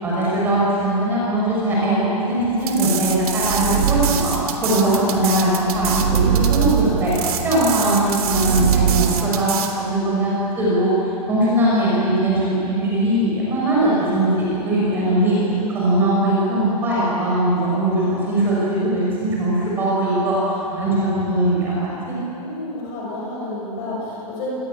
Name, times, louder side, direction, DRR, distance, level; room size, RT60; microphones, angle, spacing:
voice 1, 0.0-4.3 4.6-7.1 7.4-10.9 11.3-15.3 15.7-20.3 20.7-22.2, right 1 dB, 10° right, -6 dB, 6.6 m, -20 dB
sound 1, 2.6-9.7, right 8 dB, 65° right, 3.3 m, -27 dB
sound 2, 2.7-9.2, right 9 dB, 45° right, 1.8 m, -23 dB
voice 2, 22.4-24.5, left 2 dB, 25° left, -3 dB, 7.1 m, -30 dB
29.5 x 21.0 x 8.7 m, 2.9 s
hypercardioid pair, 175°, 20 cm